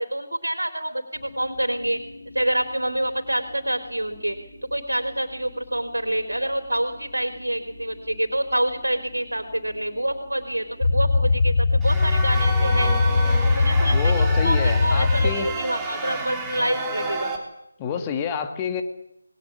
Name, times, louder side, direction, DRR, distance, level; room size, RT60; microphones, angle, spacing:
voice 1, 0.0-2.0 2.3-4.4 4.7-13.0 13.5-17.3, right 1 dB, 80° right, 6 dB, 3.8 m, -27 dB
sound 1, 1.1-15.3, left 3 dB, 40° left, 7.1 m, -23 dB
sound 2, 11.8-17.4, right 2 dB, 5° right, 3.3 m, -30 dB
voice 2, 13.9-15.5 17.8-18.8, left 7 dB, 15° left, 7 dB, 1.9 m, -28 dB
28.5 x 21.0 x 8.7 m, 0.81 s
figure-of-eight pair, 155°, 0 cm